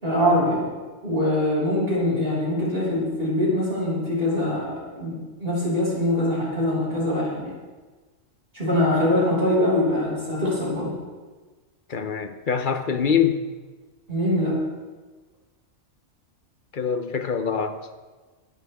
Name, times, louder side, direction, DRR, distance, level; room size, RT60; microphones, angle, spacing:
voice 1, 0.0-0.7 1.0-7.5 8.5-11.0 14.1-14.6, left 1 dB, 50° right, -6 dB, 6.1 m, -23 dB
voice 2, 11.9-13.4 16.7-17.8, left 7 dB, 45° left, 8 dB, 1.1 m, -24 dB
21.0 x 12.0 x 3.6 m, 1.3 s
omnidirectional pair, 1.3 m